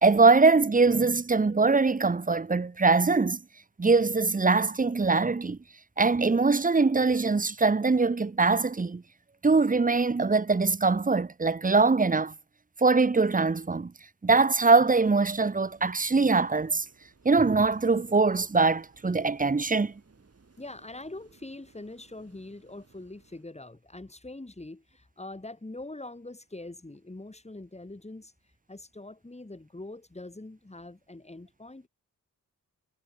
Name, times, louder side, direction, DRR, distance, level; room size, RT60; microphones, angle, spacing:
voice 1, 0.0-3.4 3.8-5.6 6.0-9.0 9.4-12.3 12.8-13.9 14.2-16.8 17.2-19.9, right 4 dB, 25° right, 0.9 m, -22 dB
sound 1, 15.2-23.5, right 4 dB, 45° right, 7.4 m, -61 dB
voice 2, 20.6-28.3 28.7-31.9, left 2 dB, 20° left, 5.6 m, -43 dB
wide cardioid pair, 85°, 33 cm